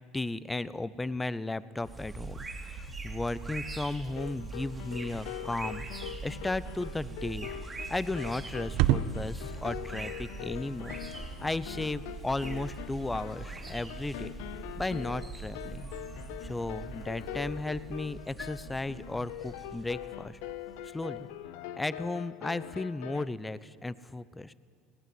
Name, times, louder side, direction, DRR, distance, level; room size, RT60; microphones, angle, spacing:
voice 1, 0.1-5.9 6.2-7.5 7.9-11.0 11.4-14.3 14.8-15.9 16.4-20.4 20.9-21.3 21.8-24.5, left 2 dB, 15° left, 18 dB, 0.8 m, -35 dB
sound 1, 1.8-21.2, right 3 dB, 15° right, 3.1 m, -43 dB
sound 2, 4.0-23.3, left 11 dB, 75° left, 0.8 m, -43 dB
sound 3, 4.7-13.6, right 11 dB, 70° right, 0.7 m, -37 dB
20.5 x 18.5 x 8.0 m, 2.2 s
hypercardioid pair, 80°, 0 cm